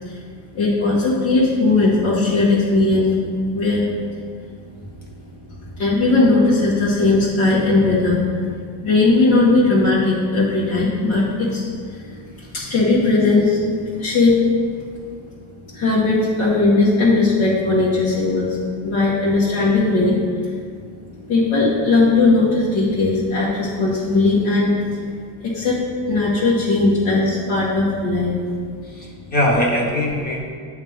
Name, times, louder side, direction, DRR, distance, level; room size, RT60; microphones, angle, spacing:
voice 1, 0.5-3.1 3.5-3.9 5.7-8.5 8.8-11.6 11.9-13.6 14.0-14.6 15.7-18.6 18.8-20.6 21.3-25.0 25.4-25.8 26.1-28.4, left 3 dB, 80° left, -9 dB, 1.5 m, -18 dB
voice 2, 28.8-30.4, left 1 dB, 20° left, -2 dB, 1.1 m, -21 dB
8.6 x 3.2 x 3.5 m, 2.1 s
cardioid pair, 150°, 40 cm